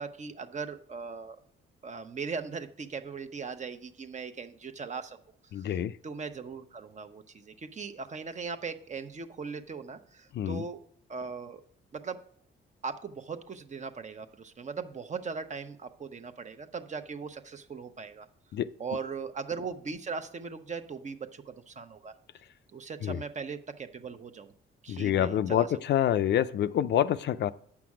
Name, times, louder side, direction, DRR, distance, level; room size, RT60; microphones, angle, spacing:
voice 1, 0.0-1.4 1.8-5.2 5.5-5.7 6.0-10.8 11.1-11.6 11.9-12.2 12.8-18.3 18.8-22.1 22.7-24.5 24.8-25.7, right 5 dB, 35° right, 0.9 m, -39 dB
voice 2, 5.5-5.9 10.3-10.6 18.5-18.7 23.0-23.2 24.9-27.5, left 10 dB, 60° left, 0.5 m, -27 dB
8.6 x 6.0 x 4.8 m
cardioid pair, 90°, 20 cm